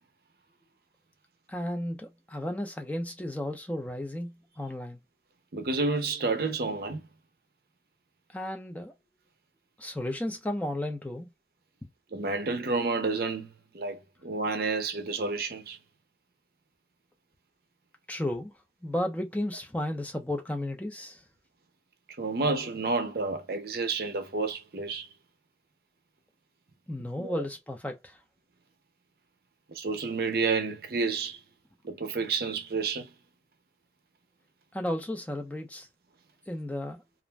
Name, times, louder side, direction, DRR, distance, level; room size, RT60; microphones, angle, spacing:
voice 1, 1.5-5.0 8.3-8.9 9.8-11.3 18.1-18.5 18.8-21.2 26.9-28.2 34.7-35.9 36.5-37.0, left 1 dB, 10° left, 0.5 m, -33 dB
voice 2, 5.5-7.0 12.1-15.8 22.2-25.1 27.2-27.4 29.8-31.4 31.8-33.1, right 3 dB, 55° right, 0.6 m, -30 dB
2.5 x 2.1 x 3.2 m
head